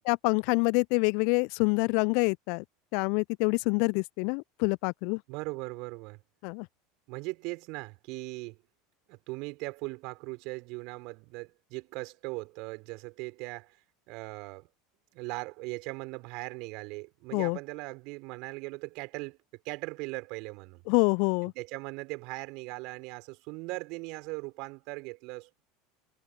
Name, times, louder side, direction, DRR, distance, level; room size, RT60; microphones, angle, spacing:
voice 1, 0.1-2.6 2.9-5.2 6.4-6.7 17.3-17.6 20.9-21.5, left 38 dB, 55° left, 0.8 m, -26 dB
voice 2, 5.3-6.2 7.1-8.6 9.1-13.8 14.1-14.7 15.1-19.4 19.6-20.8 21.4-25.5, right 27 dB, 55° right, 6.5 m, -39 dB
figure-of-eight pair, 75°, 0 cm